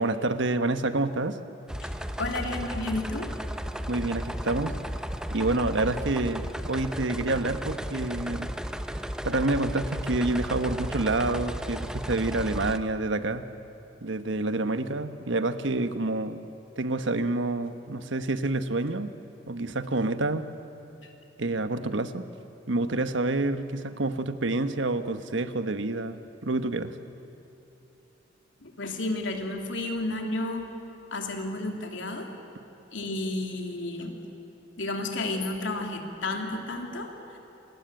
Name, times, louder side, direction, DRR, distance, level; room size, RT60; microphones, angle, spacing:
voice 1, 0.0-1.4 3.9-4.7 5.3-8.5 9.2-13.5 14.0-16.4 16.8-19.1 19.5-20.5 21.4-22.2 22.7-26.9, right 2 dB, 80° right, 10 dB, 1.2 m, -28 dB
sound 1, 1.7-12.8, equal, 5° right, 0.8 m, -34 dB
voice 2, 2.2-3.3 21.0-21.1 28.6-30.6 31.1-32.3 32.9-34.1 34.8-37.1, left 2 dB, 90° left, 3 dB, 3.1 m, -32 dB
27.5 x 20.5 x 9.1 m, 3.0 s
head